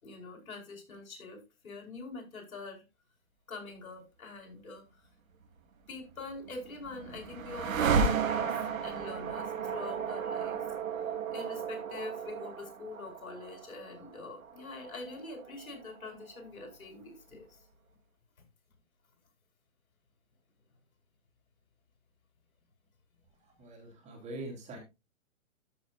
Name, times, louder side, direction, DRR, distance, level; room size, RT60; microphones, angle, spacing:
voice 1, 0.0-2.8 3.5-4.8 5.9-10.6 10.9-11.0 11.3-17.6, left 3 dB, 85° left, 2 dB, 4.8 m, -44 dB
sound 1, 6.3-16.4, right 6 dB, 75° right, 2.2 m, -34 dB
voice 2, 23.6-24.8, right 2 dB, 15° right, 1 dB, 3.1 m, -43 dB
14.0 x 6.3 x 2.5 m, 0.25 s
hypercardioid pair, 145°, 41 cm